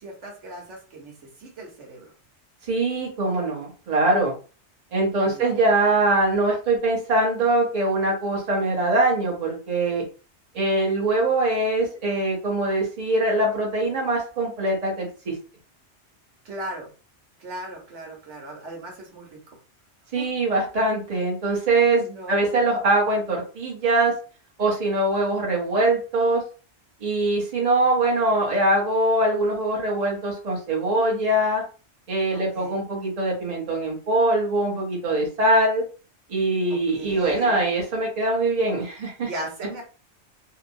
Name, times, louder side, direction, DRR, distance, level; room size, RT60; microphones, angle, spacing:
voice 1, 0.0-2.0 5.2-5.7 16.4-16.9 17.4-19.4 20.2-20.3 22.0-22.5 32.3-32.8 36.7-37.6 39.2-39.8, right 1 dB, 85° right, 0 dB, 1.3 m, -38 dB
voice 2, 2.7-4.4 4.9-10.0 10.5-15.3 20.1-22.0 22.3-24.1 24.6-26.4 27.0-31.6 32.1-35.8 36.3-39.3, right 2 dB, 35° right, -3 dB, 1.0 m, -22 dB
2.9 x 2.1 x 2.6 m, 0.36 s
omnidirectional pair, 1.2 m